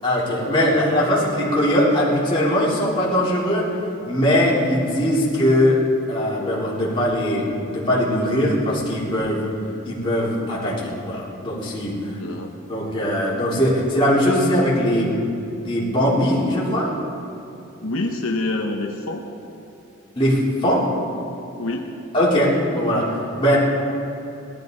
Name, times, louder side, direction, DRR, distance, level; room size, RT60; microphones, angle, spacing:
voice 1, 0.0-3.7 4.1-5.8 6.1-9.4 9.9-12.0 12.7-15.2 15.6-16.9 20.2-20.9 22.1-23.1 23.4-23.6, equal, 25° left, -7 dB, 3.5 m, -20 dB
voice 2, 12.0-12.5 17.8-19.2 21.6-21.9, left 2 dB, 80° left, 1 dB, 1.1 m, -26 dB
19.0 x 13.5 x 4.0 m, 2.9 s
head